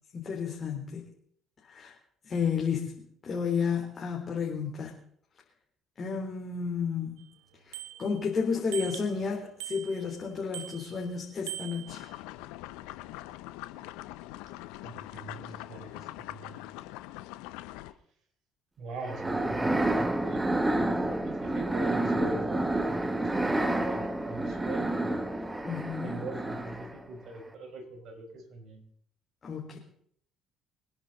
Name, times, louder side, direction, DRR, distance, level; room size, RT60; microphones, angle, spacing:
voice 1, 0.1-1.1 1.6-1.9 2.2-4.9 6.0-7.3 7.7-12.0 25.6-26.2 29.4-29.8, left 6 dB, 45° left, -1 dB, 3.6 m, -32 dB
Bicycle bell, 7.2-7.3 7.7-8.3 8.7-9.2 9.6-10.2 10.5-11.1 11.5-12.2, right 13 dB, 80° right, 1.3 m, -41 dB
sound 1, 11.9-17.9, left 16 dB, 75° left, 0.8 m, -43 dB
voice 2, 14.8-16.6 18.8-22.7 22.9-25.0 26.0-28.8, right 2 dB, 60° right, 2 dB, 5.3 m, -42 dB
sound 2, 19.0-27.1, right 1 dB, 15° right, 1.7 m, -29 dB
25.0 x 10.5 x 4.1 m, 0.64 s
hypercardioid pair, 55°, 0 cm